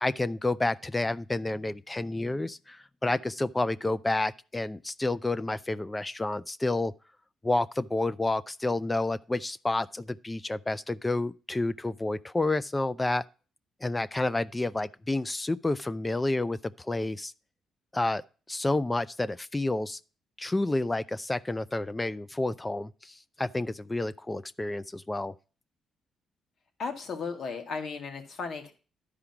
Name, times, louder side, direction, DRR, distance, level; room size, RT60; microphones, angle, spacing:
voice 1, 0.0-6.9 7.4-13.2 13.8-17.3 17.9-18.2 18.5-20.0 20.4-25.3, left 2 dB, 15° left, 0.4 m, -30 dB
voice 2, 26.8-28.7, left 5 dB, 60° left, 2.1 m, -35 dB
11.5 x 5.0 x 5.8 m
cardioid pair, 90°, 0 cm